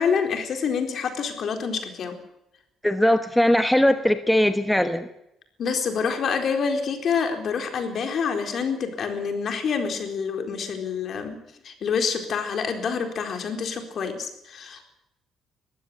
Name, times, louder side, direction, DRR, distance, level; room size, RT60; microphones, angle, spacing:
voice 1, 0.0-2.2 5.6-11.4 11.6-14.8, left 6 dB, 55° left, 5 dB, 4.2 m, -27 dB
voice 2, 2.8-5.1, left 1 dB, 5° left, 9 dB, 1.2 m, -20 dB
20.5 x 15.5 x 9.6 m, 0.85 s
cardioid pair, 110°, 0 cm